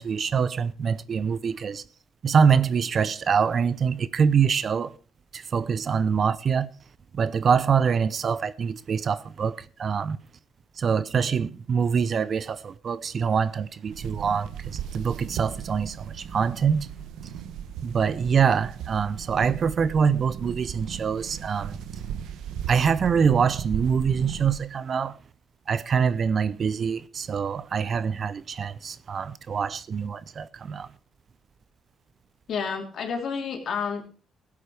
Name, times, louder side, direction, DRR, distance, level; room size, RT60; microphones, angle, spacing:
voice 1, 0.0-1.8 2.2-5.0 5.3-6.7 7.1-10.2 10.8-16.9 17.8-21.8 22.7-25.2 25.7-30.9, right 6 dB, 50° right, 0.6 m, -24 dB
sound 1, 13.9-24.6, right 8 dB, 85° right, 1.0 m, -37 dB
voice 2, 32.5-34.0, left 6 dB, 60° left, 3.4 m, -30 dB
15.5 x 8.5 x 4.9 m
cardioid pair, 90°, 0 cm